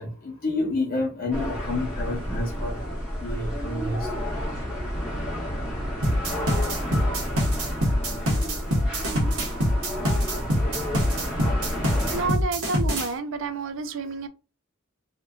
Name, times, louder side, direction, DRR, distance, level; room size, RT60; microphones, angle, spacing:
voice 1, 0.0-2.8 3.2-4.0, left 2 dB, 40° left, 0.9 m, -29 dB
sound 1, 1.3-12.3, equal, 5° right, 0.9 m, -30 dB
sound 2, 6.0-13.1, equal, 85° right, 1.0 m, -24 dB
voice 2, 12.1-14.3, right 4 dB, 60° right, 0.3 m, -29 dB
2.9 x 2.4 x 2.3 m
head